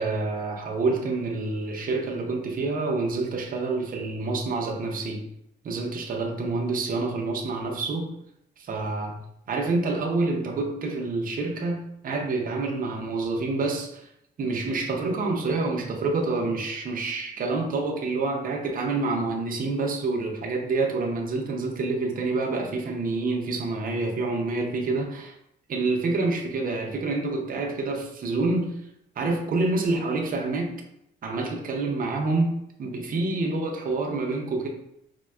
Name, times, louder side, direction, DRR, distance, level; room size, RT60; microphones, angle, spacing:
voice 1, 0.0-5.3 5.6-8.1 8.6-9.2 9.5-14.0 14.4-25.3 25.7-28.8 29.2-30.8 31.2-34.7, right 3 dB, 45° right, 1 dB, 0.6 m, -27 dB
4.1 x 2.2 x 2.3 m, 0.77 s
cardioid pair, 90°, 20 cm